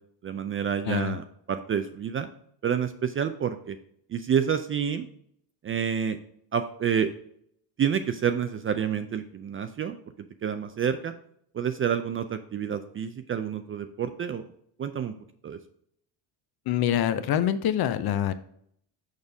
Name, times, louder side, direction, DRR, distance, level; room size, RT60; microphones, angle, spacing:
voice 1, 0.2-2.3 2.6-3.8 4.1-5.1 5.6-6.2 6.5-7.1 7.8-10.0 10.4-11.1 11.5-14.5 14.8-15.1 15.4-15.6, right 8 dB, 30° right, 9 dB, 0.4 m, -28 dB
voice 2, 0.8-1.2 16.7-18.3, left 10 dB, 50° left, 12 dB, 0.7 m, -25 dB
6.5 x 5.3 x 3.4 m, 0.67 s
cardioid pair, 110°, 48 cm